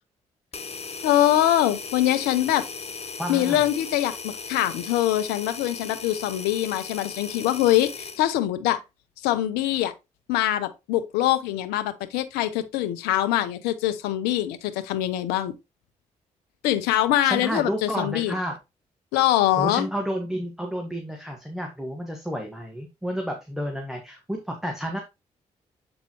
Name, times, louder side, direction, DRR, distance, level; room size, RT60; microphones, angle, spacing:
sound 1, 0.5-8.2, left 4 dB, 40° left, 0.9 m, -37 dB
voice 1, 1.0-2.7 3.3-8.8 9.2-9.9 10.3-15.5 16.6-18.3 19.1-19.9, left 13 dB, 85° left, 0.6 m, -23 dB
voice 2, 3.2-3.6 17.2-18.6 19.6-25.0, equal, 5° right, 1.5 m, -31 dB
7.8 x 4.1 x 3.0 m
hypercardioid pair, 45°, 16 cm